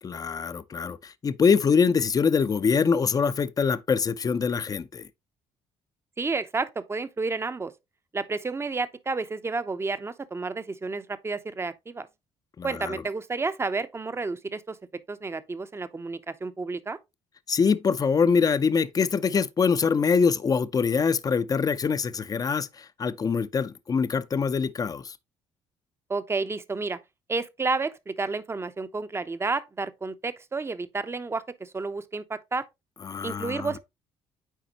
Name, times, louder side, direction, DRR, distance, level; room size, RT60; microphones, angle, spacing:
voice 1, 0.0-5.1 12.6-13.0 17.5-25.2 33.0-33.7, left 5 dB, 30° left, 0.5 m, -24 dB
voice 2, 6.2-7.7 8.1-12.1 12.6-14.8 15.1-17.0 26.1-27.0 27.3-32.7 33.2-33.8, right 3 dB, 20° right, 0.7 m, -31 dB
9.1 x 4.2 x 2.9 m
cardioid pair, 85°, 12 cm